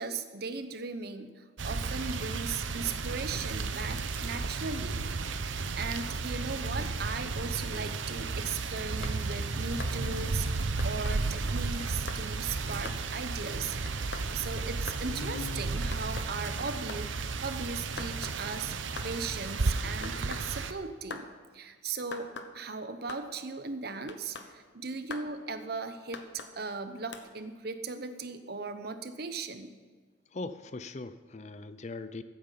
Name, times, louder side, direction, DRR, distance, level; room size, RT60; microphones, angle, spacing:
voice 1, 0.0-5.1 5.4-21.3 21.5-29.7, right 4 dB, 55° right, 9 dB, 0.9 m, -38 dB
sound 1, 1.6-20.7, right 3 dB, 80° right, 0.8 m, -33 dB
sound 2, 9.0-18.0, left 2 dB, 90° left, 1.5 m, -48 dB
sound 3, 9.0-9.2 9.8-10.0 10.8-11.2 11.8-12.2 12.8-13.0 13.9-14.3 14.9-15.1 15.9-16.3 16.9-17.0 18.0-18.4 18.9-19.1 20.0-20.5 21.1-21.3 22.1-22.5 23.1-23.2 24.1-24.5 25.1-25.3 26.1-26.5 27.1-27.3, left 4 dB, 65° left, 1.0 m, -42 dB
voice 2, 30.3-32.2, left 3 dB, 35° left, 12 dB, 0.5 m, -40 dB
14.5 x 8.7 x 5.7 m, 1.5 s
head